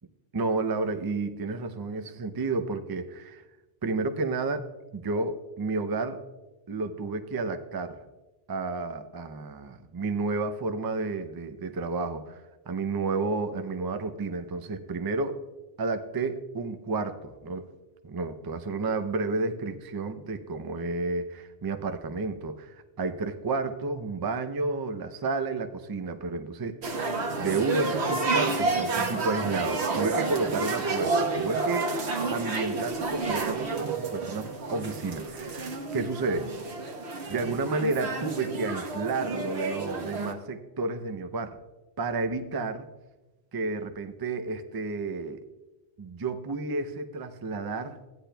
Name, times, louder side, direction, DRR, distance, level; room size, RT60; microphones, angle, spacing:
voice 1, 0.3-3.4 3.8-4.7 4.9-6.2 6.7-8.0 8.5-15.4 15.8-17.7 18.0-26.8 27.4-31.9 32.2-36.7 37.3-41.6 42.0-42.9 43.5-45.4 46.0-48.0, right 3 dB, 30° right, 8 dB, 0.4 m, -31 dB
sound 1, 26.8-40.3, right 3 dB, 85° right, 1.3 m, -30 dB
15.0 x 10.0 x 2.2 m, 1.1 s
omnidirectional pair, 1.1 m